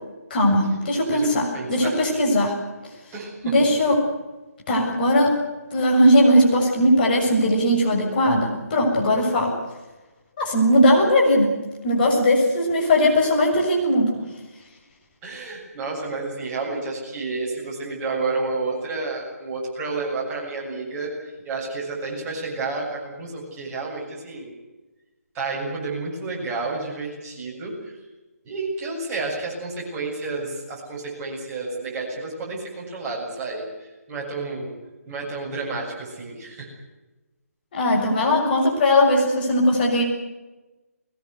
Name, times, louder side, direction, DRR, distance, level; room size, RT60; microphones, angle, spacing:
voice 1, 0.3-2.5 3.4-4.0 4.7-5.4 5.7-9.6 10.4-11.5 11.8-14.1 37.7-40.0, equal, 35° left, 0 dB, 7.1 m, -19 dB
voice 2, 1.5-1.9 3.1-3.5 14.1-14.2 15.2-21.1 21.4-24.5 25.3-28.0 28.4-34.7 35.1-36.7, right 3 dB, 15° right, -4 dB, 7.6 m, -30 dB
22.5 x 20.5 x 8.2 m, 1.1 s
figure-of-eight pair, 145°, 8 cm